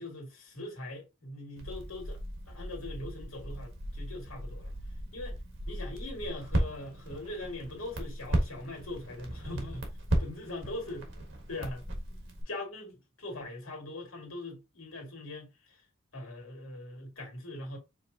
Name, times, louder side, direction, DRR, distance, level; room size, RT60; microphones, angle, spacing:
voice 1, 0.0-2.2 2.5-4.7 5.1-5.4 5.7-9.9 10.2-11.0 11.5-11.8 12.5-15.8 16.1-17.8, left 1 dB, 90° left, 2.1 m, -41 dB
Crackle, 1.6-12.4, right 1 dB, 65° right, 1.4 m, -36 dB
5.1 x 3.1 x 2.7 m
head